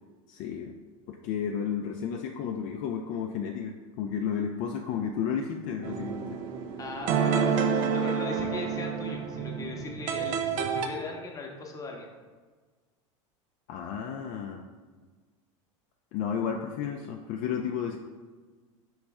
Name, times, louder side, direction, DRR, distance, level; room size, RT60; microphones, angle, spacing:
voice 1, 0.3-0.7 1.1-6.2 13.7-14.6 16.1-18.0, left 7 dB, 50° left, 3 dB, 0.4 m, -32 dB
sound 1, 5.8-10.9, right 6 dB, 50° right, 0.5 m, -29 dB
voice 2, 6.8-12.1, left 3 dB, 20° left, 1 dB, 0.8 m, -39 dB
4.2 x 3.1 x 3.5 m, 1.4 s
hypercardioid pair, 100°, 17 cm